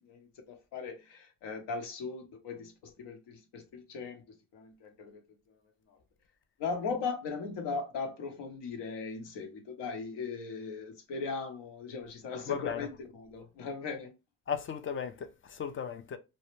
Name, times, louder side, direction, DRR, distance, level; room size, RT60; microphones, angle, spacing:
voice 1, 0.0-5.2 5.5-5.6 5.9-6.0 6.6-14.1, left 4 dB, 65° left, 0.8 m, -38 dB
voice 2, 12.5-12.9 14.5-16.2, left 7 dB, 30° left, 0.3 m, -36 dB
2.1 x 2.1 x 3.0 m
supercardioid pair, 75°, 44 cm